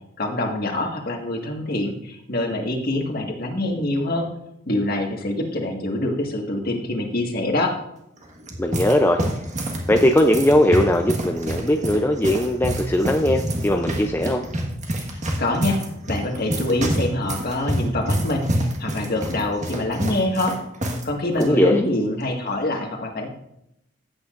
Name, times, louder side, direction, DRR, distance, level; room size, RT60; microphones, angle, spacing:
voice 1, 0.2-4.3 4.7-7.7 15.1-15.8 16.1-20.5 21.0-23.3, left 1 dB, 50° left, 1 dB, 1.8 m, -25 dB
sound 1, 8.2-21.1 21.3-21.5 22.2-22.5, right 1 dB, 40° right, 1.6 m, -27 dB
voice 2, 8.6-9.2 9.9-14.4 21.4-21.9, left 1 dB, 10° left, 3 dB, 0.5 m, -19 dB
16.0 x 8.4 x 2.5 m, 0.79 s
head